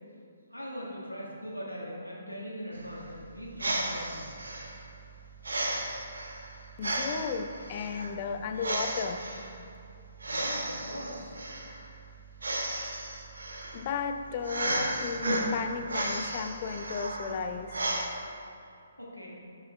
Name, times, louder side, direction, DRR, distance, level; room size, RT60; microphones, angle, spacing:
voice 1, 0.5-4.3 10.2-11.4 19.0-19.3, equal, 90° left, -4 dB, 1.6 m, -40 dB
sound 1, 2.7-18.0, right 2 dB, 65° right, 0.9 m, -34 dB
voice 2, 6.8-9.3 13.7-17.8, left 6 dB, 35° left, 7 dB, 0.4 m, -34 dB
7.3 x 5.5 x 3.4 m, 2.5 s
figure-of-eight pair, 135°, 0 cm